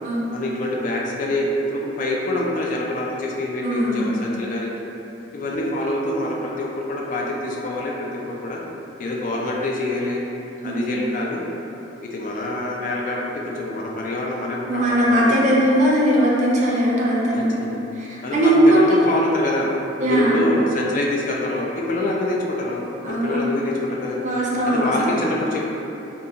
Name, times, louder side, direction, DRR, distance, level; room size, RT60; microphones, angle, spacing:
voice 1, 0.3-4.7 5.3-8.6 9.0-10.2 10.6-11.4 12.1-15.4 17.3-17.8 18.2-19.7 20.0-22.8 23.1-24.3 24.7-25.7, left 1 dB, 45° left, -2 dB, 0.3 m, -25 dB
voice 2, 3.6-4.1 10.6-10.9 14.7-17.5 18.0-19.1 20.0-20.3 23.0-23.4 24.2-25.2, right 1 dB, 40° right, -5 dB, 0.5 m, -19 dB
2.7 x 2.3 x 2.5 m, 2.9 s
head